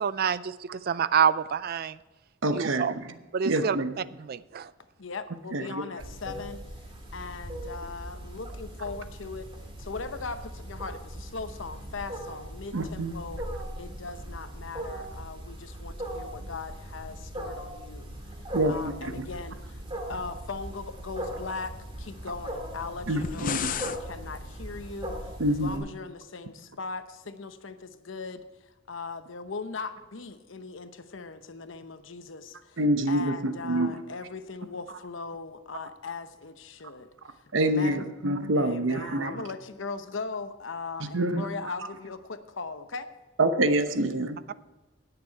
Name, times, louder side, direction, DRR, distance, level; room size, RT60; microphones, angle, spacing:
voice 1, 0.0-2.0 2.5-2.9 3.3-3.8 4.3-4.7, right 7 dB, 50° right, 17 dB, 0.4 m, -27 dB
voice 2, 2.4-3.2 3.4-3.9 5.5-5.8 12.7-13.1 18.5-19.2 23.1-23.7 25.4-25.8 32.8-34.0 37.5-39.4 41.0-41.5 43.4-44.4, right 1 dB, 80° right, 9 dB, 1.0 m, -26 dB
voice 3, 5.0-9.5 9.8-13.4 13.8-19.8 20.1-32.8 33.1-38.1 38.5-43.1, left 4 dB, 75° left, 10 dB, 0.9 m, -39 dB
Wild animals, 6.0-25.8, right 1 dB, 30° right, 2.3 m, -39 dB
sound 1, 23.1-24.0, left 8 dB, 45° left, 0.5 m, -32 dB
18.5 x 6.8 x 4.7 m, 1.1 s
head